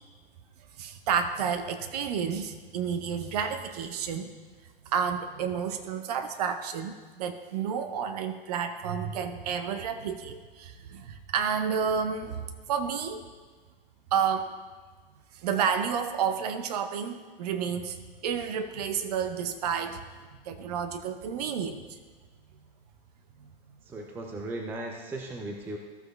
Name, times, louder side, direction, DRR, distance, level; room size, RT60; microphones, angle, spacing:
voice 1, 0.8-4.3 4.8-13.3 14.1-14.5 15.3-20.0 20.4-21.8 23.4-23.5, right 7 dB, 45° right, 7 dB, 0.7 m, -30 dB
voice 2, 23.9-25.8, right 2 dB, 5° right, 2 dB, 0.5 m, -37 dB
14.5 x 7.7 x 2.3 m, 1.4 s
figure-of-eight pair, 110°, 29 cm